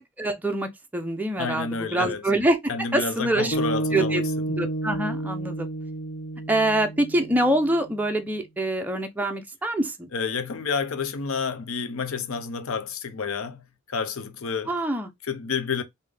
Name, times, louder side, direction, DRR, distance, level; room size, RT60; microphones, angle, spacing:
voice 1, 0.2-3.6 3.9-5.7 6.5-10.1 14.7-15.1, right 1 dB, 10° right, 0.5 m, -25 dB
voice 2, 1.4-2.2 2.7-4.2 10.1-14.7 15.2-15.8, left 5 dB, 70° left, 0.6 m, -29 dB
sound 1, 3.5-7.9, right 1 dB, 35° left, 1.0 m, -30 dB
3.5 x 2.6 x 3.3 m
head